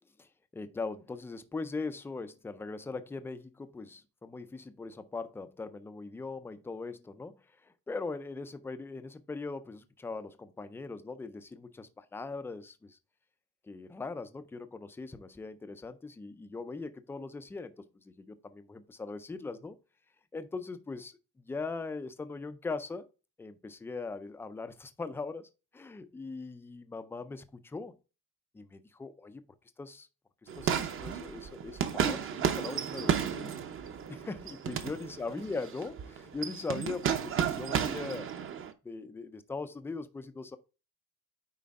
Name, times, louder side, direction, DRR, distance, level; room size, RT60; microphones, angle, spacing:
voice 1, 0.2-13.0 13.6-19.8 20.3-23.1 23.4-27.9 28.5-29.4 29.8-30.1 30.4-33.6 34.1-38.3 38.8-40.6, left 3 dB, 5° left, 0.3 m, -40 dB
sound 1, 30.5-38.7, right 8 dB, 30° right, 0.7 m, -33 dB
9.4 x 4.3 x 3.5 m
cardioid pair, 175°, 41 cm